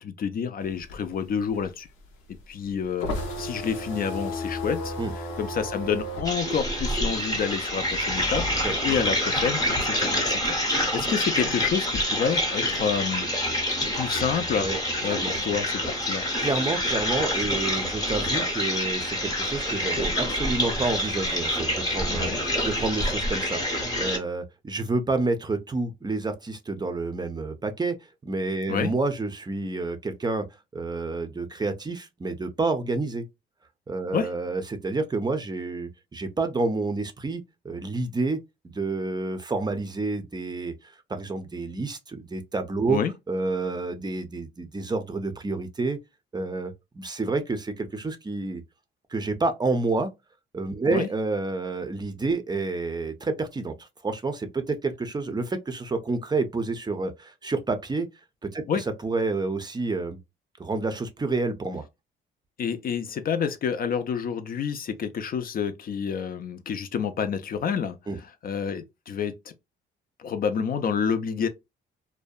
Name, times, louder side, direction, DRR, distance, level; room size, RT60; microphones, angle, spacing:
voice 1, 0.0-1.9 2.5-4.9 5.4-13.3 13.9-14.7 15.0-16.3 22.1-22.4 28.7-28.9 34.1-34.3 42.9-43.1 50.9-51.1 58.7-58.8 62.6-69.3 70.2-71.5, left 7 dB, 50° left, 0.4 m, -29 dB
sound 1, 0.6-7.7 8.0-9.8, left 1 dB, 90° left, 0.7 m, -34 dB
sound 2, 6.2-24.2, equal, 20° left, 0.8 m, -27 dB
voice 2, 16.4-28.0 28.2-30.4 30.7-33.2 33.9-38.4 38.7-40.7 41.1-43.0 43.3-46.0 46.3-48.6 49.1-50.1 50.5-53.7 54.0-58.1 58.4-60.2 60.6-61.8 68.1-68.2, right 3 dB, 20° right, 0.5 m, -29 dB
2.6 x 2.1 x 2.2 m
cardioid pair, 90°, 20 cm